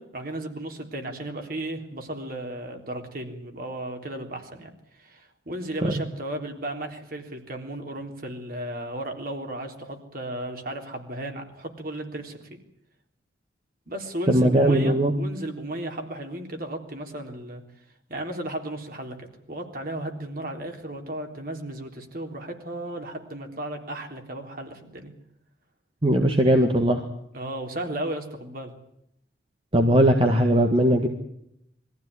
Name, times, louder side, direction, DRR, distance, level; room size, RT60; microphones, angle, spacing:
voice 1, 0.0-12.4 13.9-17.6 18.1-25.1 27.3-28.7, right 1 dB, 50° right, 4 dB, 3.7 m, -35 dB
voice 2, 14.3-15.1 26.0-27.0 29.7-31.1, right 1 dB, 30° right, 4 dB, 1.8 m, -19 dB
22.5 x 15.0 x 9.7 m, 0.77 s
head